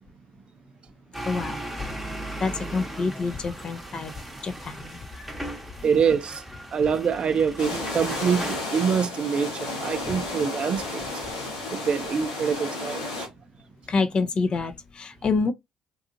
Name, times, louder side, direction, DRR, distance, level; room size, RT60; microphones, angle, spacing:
sound 1, 1.1-8.6, right 1 dB, 5° right, 0.9 m, -38 dB
voice 1, 1.2-1.6 2.4-4.1 4.4-5.0 5.8-5.9 13.9-15.5, left 4 dB, 40° left, 0.4 m, -27 dB
voice 2, 5.8-6.4 6.7-11.1 11.7-13.3, right 6 dB, 45° right, 0.4 m, -25 dB
sound 2, 7.6-13.3, left 2 dB, 80° left, 1.0 m, -32 dB
2.6 x 2.4 x 2.5 m
hypercardioid pair, 55°, 2 cm